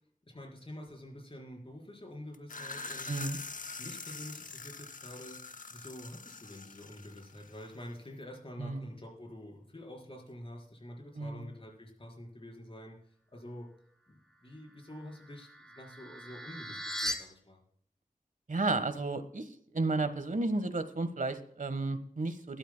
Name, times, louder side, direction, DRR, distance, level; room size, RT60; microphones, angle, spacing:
voice 1, 0.3-3.1 3.8-5.4 5.7-13.0 13.3-13.7 14.1-17.6, left 1 dB, 40° left, 0 dB, 4.4 m, -47 dB
sound 1, 2.3-7.9, left 3 dB, 65° left, 0.7 m, -44 dB
voice 2, 3.1-3.4 8.6-8.9 11.2-11.5 18.5-22.6, right 2 dB, 60° right, 10 dB, 1.3 m, -33 dB
sound 2, 14.9-17.1, equal, 5° left, 2.4 m, -39 dB
21.0 x 11.5 x 2.2 m, 0.63 s
wide cardioid pair, 75°, 15 cm